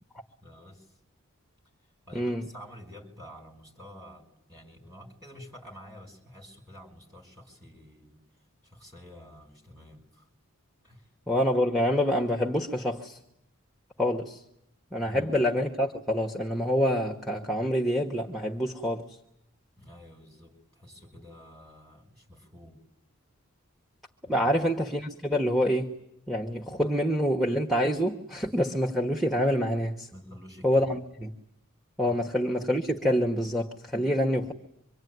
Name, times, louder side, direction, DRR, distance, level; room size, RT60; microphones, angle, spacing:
voice 1, 0.4-0.9 2.0-8.2 8.6-10.3 10.8-11.1 15.0-15.3 19.8-22.8 24.2-24.7 30.1-30.9 32.1-32.2 33.9-34.2, equal, 15° right, 5.5 m, -49 dB
voice 2, 2.1-2.5 11.3-13.2 14.0-14.4 14.9-19.2 24.3-25.9 26.3-30.1 30.6-31.3 32.0-34.5, equal, ahead, 1.2 m, -26 dB
25.0 x 24.5 x 9.4 m
head